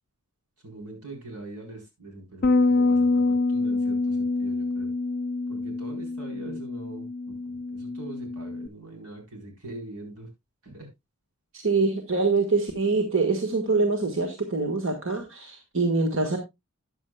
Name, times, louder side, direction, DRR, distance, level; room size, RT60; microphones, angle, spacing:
voice 1, 0.6-4.9 5.5-10.3 10.6-10.9, right 2 dB, 90° right, 2 dB, 4.2 m, -43 dB
Bass guitar, 2.4-8.7, left 3 dB, 45° left, 0.5 m, -26 dB
voice 2, 11.5-16.4, right 3 dB, 60° right, 3 dB, 1.7 m, -25 dB
13.5 x 9.3 x 2.3 m, 0.21 s
head